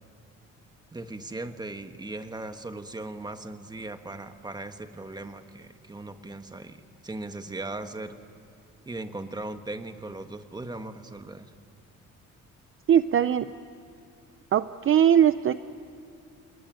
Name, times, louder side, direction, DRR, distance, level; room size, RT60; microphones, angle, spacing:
voice 1, 0.9-8.2 8.8-11.5, right 2 dB, 15° right, 8 dB, 1.4 m, -38 dB
voice 2, 12.9-13.5 14.5-15.5, right 9 dB, 45° right, 13 dB, 0.6 m, -20 dB
28.5 x 20.5 x 9.2 m, 2.6 s
cardioid pair, 130°, 30 cm